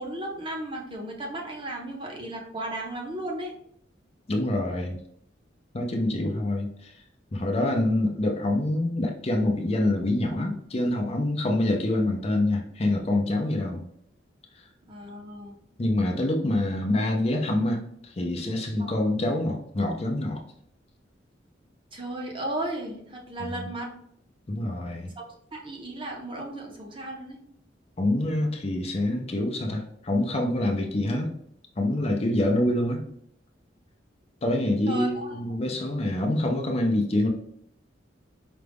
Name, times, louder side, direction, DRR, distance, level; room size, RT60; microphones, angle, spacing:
voice 1, 0.0-3.5 14.9-15.6 18.8-19.0 21.9-23.9 25.2-25.3 25.5-27.4 34.9-35.4, right 1 dB, 25° right, 0 dB, 0.7 m, -35 dB
voice 2, 4.3-5.0 5.7-6.9 7.3-13.9 14.6-14.7 15.8-20.4 23.6-23.7 24.5-25.1 28.0-31.3 31.8-33.0 34.4-37.3, left 1 dB, 30° left, 2 dB, 0.5 m, -26 dB
5.0 x 2.3 x 3.4 m, 0.70 s
head